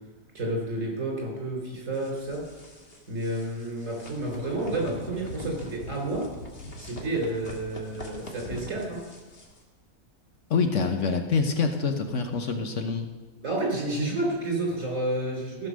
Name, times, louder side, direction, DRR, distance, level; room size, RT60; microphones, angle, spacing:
voice 1, 0.3-2.4 3.1-6.3 6.8-9.0 13.4-15.7, right 2 dB, 60° right, -1 dB, 4.0 m, -30 dB
sound 1, 1.9-9.6, left 1 dB, 45° left, 1.8 m, -42 dB
voice 2, 10.5-13.1, left 5 dB, 60° left, 5 dB, 1.2 m, -26 dB
15.0 x 5.9 x 6.3 m, 1.2 s
omnidirectional pair, 1.5 m